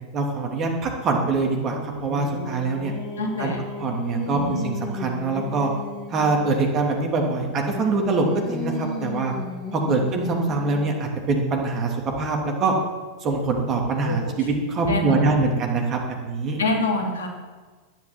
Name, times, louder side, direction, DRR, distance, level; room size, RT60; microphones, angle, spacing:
voice 1, 0.1-2.9 3.4-3.5 3.8-5.7 6.1-9.3 9.7-12.7 13.2-16.6, right 3 dB, 30° right, 1 dB, 2.9 m, -24 dB
Singing, 1.2-6.6 7.2-11.1, left 2 dB, 35° left, 2.8 m, -35 dB
voice 2, 3.2-3.6 4.3-4.6 9.9-10.0 14.0-14.4 14.9-15.4 16.6-17.3, left 2 dB, 65° left, 1 dB, 3.1 m, -26 dB
10.5 x 10.5 x 9.5 m, 1.4 s
figure-of-eight pair, 90°, 0 cm